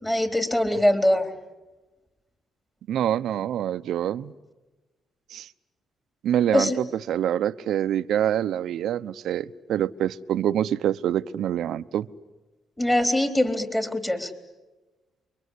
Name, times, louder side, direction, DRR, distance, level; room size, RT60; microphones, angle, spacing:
voice 1, 0.0-1.3 6.5-6.8 12.8-14.3, left 1 dB, 10° left, 3.7 m, -22 dB
voice 2, 2.9-4.3 5.3-5.5 6.2-12.1, right 10 dB, 75° right, 0.9 m, -26 dB
29.0 x 24.0 x 8.4 m
cardioid pair, 90°, 0 cm